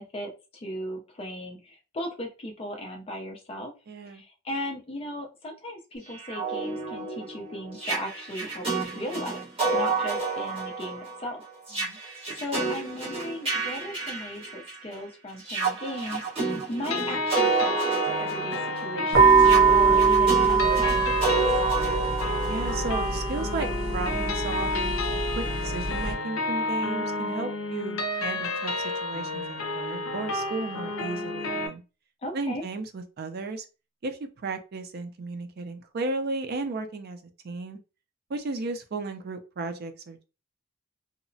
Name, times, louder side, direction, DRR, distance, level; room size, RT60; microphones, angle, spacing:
voice 1, 0.0-3.7 4.1-9.4 9.7-11.4 12.3-16.2 16.7-21.3 32.2-32.6, equal, 30° left, 0.4 m, -37 dB
voice 2, 3.9-4.2 11.7-12.0 22.5-28.7 29.0-31.8 32.3-33.6 34.0-37.2 37.4-37.8 38.3-40.2, right 3 dB, 50° right, 0.4 m, -34 dB
sound 1, 6.1-14.9 15.4-23.2, right 4 dB, 30° right, 1.2 m, -30 dB
sound 2, 16.9-31.7, left 2 dB, 80° left, 0.5 m, -31 dB
sound 3, 19.1-26.1, right 5 dB, 90° right, 0.8 m, -23 dB
2.8 x 2.0 x 2.6 m
head